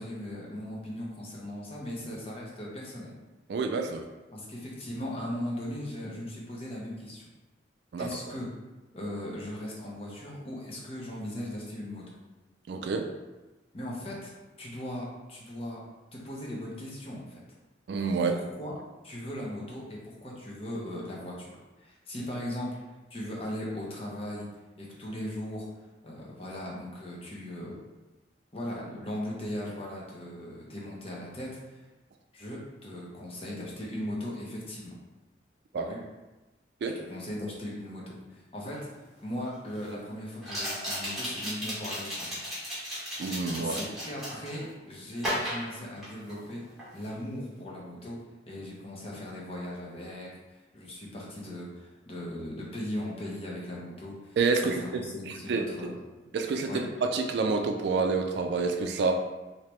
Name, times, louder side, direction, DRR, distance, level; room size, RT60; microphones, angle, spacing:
voice 1, 0.0-3.1 4.3-7.3 8.0-8.5 8.9-12.1 13.7-14.3 14.6-15.8 16.1-17.4 18.3-18.7 19.0-22.8 23.1-24.5 24.8-25.7 26.0-27.8 28.5-31.8 32.3-34.9 35.8-36.0 36.9-38.9 39.2-42.4 43.5-46.6 46.9-48.2 48.5-54.4 54.6-56.0 56.7-56.9, left 1 dB, 30° left, -4 dB, 0.8 m, -38 dB
voice 2, 3.5-4.0 7.9-8.1 12.7-13.1 17.9-18.3 35.7-35.9 36.8-37.0 43.2-43.7 54.4-55.1 55.5-55.6 56.3-59.1, right 4 dB, 60° right, 4 dB, 0.3 m, -28 dB
sound 1, 38.7-38.8 40.4-44.6 45.2-46.5 46.8-47.1, equal, ahead, 1.2 m, -35 dB
3.3 x 2.8 x 3.0 m, 1.1 s
head